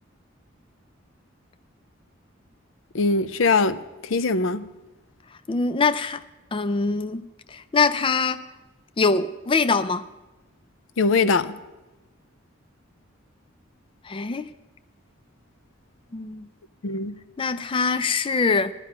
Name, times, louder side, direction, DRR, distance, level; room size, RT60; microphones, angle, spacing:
voice 1, 2.9-3.8 4.0-4.7 11.0-11.6 16.8-17.1, left 4 dB, 80° left, 0.6 m, -21 dB
voice 2, 5.5-6.2 6.5-7.2 7.5-8.4 9.0-10.0 14.0-14.5 16.1-16.5 17.4-18.7, left 4 dB, 25° left, 0.4 m, -23 dB
14.0 x 11.5 x 5.7 m
head